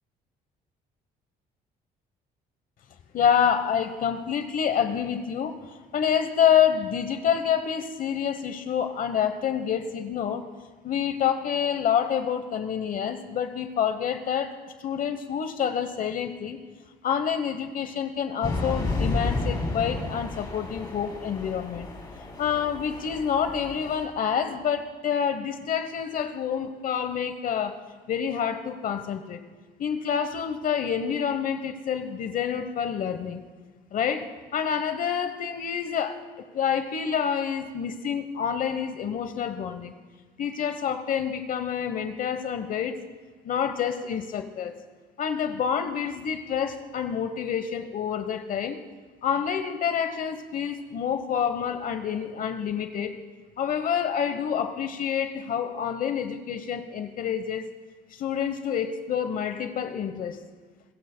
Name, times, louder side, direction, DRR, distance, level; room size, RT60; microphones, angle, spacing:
voice 1, 3.1-5.6 5.9-10.4 10.8-14.5 14.8-16.6 17.0-21.9 22.4-27.8 28.1-29.4 29.8-33.4 33.9-39.9 40.4-43.0 43.4-44.7 45.2-48.8 49.2-53.2 53.6-57.7 58.1-60.4, left 8 dB, 55° left, 9 dB, 1.0 m, -27 dB
sound 1, 18.4-24.1, left 2 dB, 25° left, 3.2 m, -32 dB
29.5 x 15.5 x 2.2 m, 1.4 s
cardioid pair, 110°, 17 cm